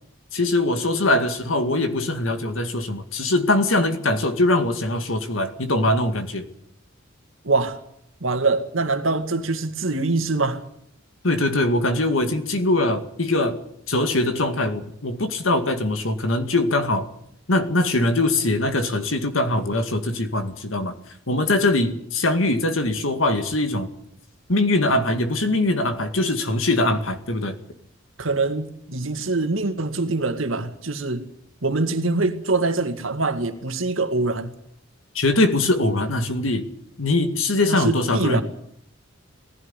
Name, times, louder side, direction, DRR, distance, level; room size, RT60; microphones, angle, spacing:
voice 1, 0.3-6.5 11.2-13.6 13.9-17.1 17.5-20.9 21.3-23.9 24.5-27.6 35.1-36.7 37.0-38.4, left 2 dB, 75° left, 2.1 m, -22 dB
voice 2, 7.4-7.8 8.2-10.6 28.2-31.2 31.6-34.5 37.7-38.4, right 3 dB, 80° right, 2.1 m, -24 dB
19.0 x 15.0 x 9.9 m
head